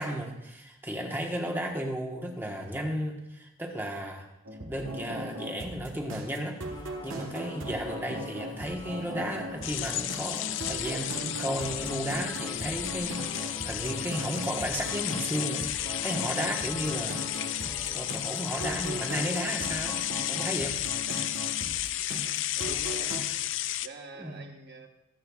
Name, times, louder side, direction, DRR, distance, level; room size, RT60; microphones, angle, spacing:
voice 1, 0.0-4.3 4.7-6.6 7.0-17.2 17.9-20.0 20.3-20.8 24.2-24.4, equal, 10° right, 1 dB, 1.3 m, -34 dB
sound 1, 4.5-23.2, equal, 65° right, 1.5 m, -39 dB
sound 2, 6.7-20.4, left 2 dB, 20° left, 0.6 m, -47 dB
sound 3, 9.6-23.9, left 13 dB, 60° left, 0.4 m, -33 dB
voice 2, 21.1-21.5 22.1-23.3 23.8-24.9, right 3 dB, 50° right, 3 dB, 1.3 m, -47 dB
24.0 x 8.7 x 2.4 m, 0.90 s
head